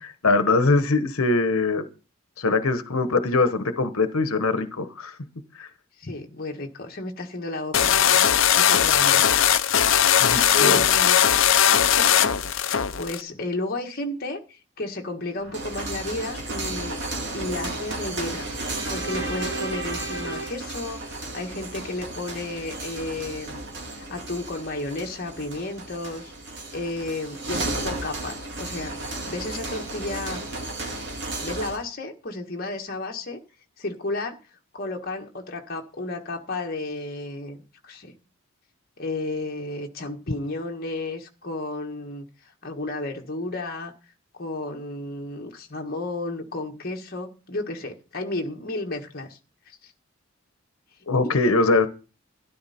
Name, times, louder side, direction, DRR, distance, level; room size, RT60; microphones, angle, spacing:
voice 1, 0.0-1.8 2.4-5.2 5.6-5.7 10.2-10.8 51.1-51.9, left 3 dB, 90° left, 1.1 m, -22 dB
voice 2, 6.0-8.3 8.5-9.3 10.5-11.5 11.7-17.0 17.3-18.4 18.9-23.6 23.9-26.3 26.7-30.4 31.4-33.4 33.8-34.4 34.7-38.2 39.0-42.2 42.6-43.9 44.4-49.4 49.7-49.9 51.2-51.3 51.7-51.8, left 2 dB, 45° left, 1.6 m, -33 dB
sound 1, 7.7-13.2, left 9 dB, 70° left, 0.7 m, -19 dB
sound 2, 15.4-31.8, right 2 dB, 55° right, 2.4 m, -34 dB
sound 3, 18.3-21.6, right 3 dB, 85° right, 4.1 m, -36 dB
13.0 x 11.5 x 4.3 m
head